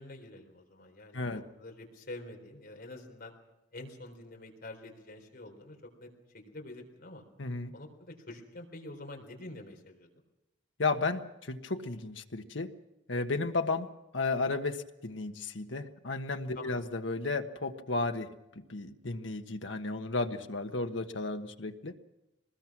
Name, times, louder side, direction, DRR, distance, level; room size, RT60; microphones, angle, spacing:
voice 1, 0.0-3.3 3.7-7.2 7.7-10.1 16.5-16.8, left 2 dB, 55° left, 2 dB, 3.9 m, -47 dB
voice 2, 7.4-7.7 10.8-12.7 13.1-13.9 14.1-18.3 18.5-21.9, left 3 dB, 80° left, 6 dB, 1.4 m, -33 dB
24.5 x 20.0 x 6.1 m, 0.96 s
head